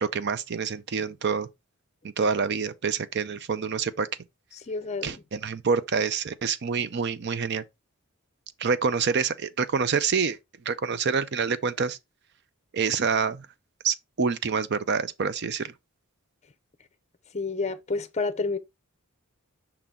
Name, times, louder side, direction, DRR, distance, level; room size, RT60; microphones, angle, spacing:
voice 1, 0.0-1.5 2.2-4.1 5.0-7.6 8.6-10.4 10.7-12.0 12.7-13.5 13.8-15.7, right 5 dB, 50° right, 0.5 m, -27 dB
voice 2, 4.7-5.2 17.3-18.6, left 3 dB, 30° left, 0.6 m, -29 dB
5.9 x 3.8 x 4.2 m
head